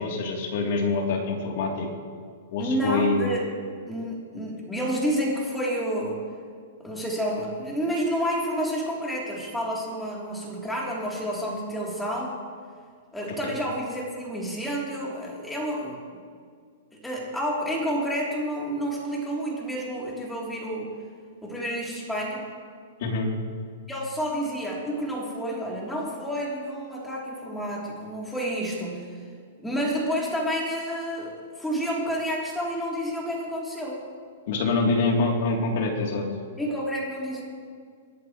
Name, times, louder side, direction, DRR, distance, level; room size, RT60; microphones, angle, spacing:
voice 1, 0.0-1.9 2.5-3.3 13.4-13.5 23.0-23.3 34.5-36.3, left 3 dB, 55° left, -1 dB, 3.3 m, -25 dB
voice 2, 2.6-3.5 3.9-6.2 6.8-12.4 13.1-16.2 16.9-20.9 21.4-22.4 23.9-29.1 29.6-34.0 36.6-37.4, equal, 5° left, -4 dB, 3.5 m, -29 dB
27.0 x 11.0 x 3.3 m, 2.1 s
hypercardioid pair, 155°, 0 cm